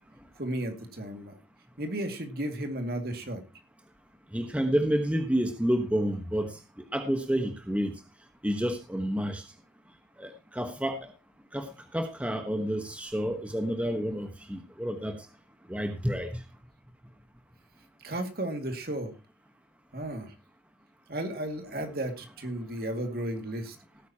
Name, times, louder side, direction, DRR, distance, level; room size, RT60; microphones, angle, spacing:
voice 1, 0.4-1.4 1.8-3.4 18.0-19.1 19.9-20.3 21.1-23.8, right 1 dB, 55° right, 5 dB, 2.3 m, -34 dB
voice 2, 4.3-6.5 6.9-7.9 8.4-9.4 10.2-11.1 11.5-15.1 15.7-16.3, equal, 5° right, 5 dB, 1.2 m, -29 dB
18.0 x 9.3 x 2.9 m, 0.27 s
head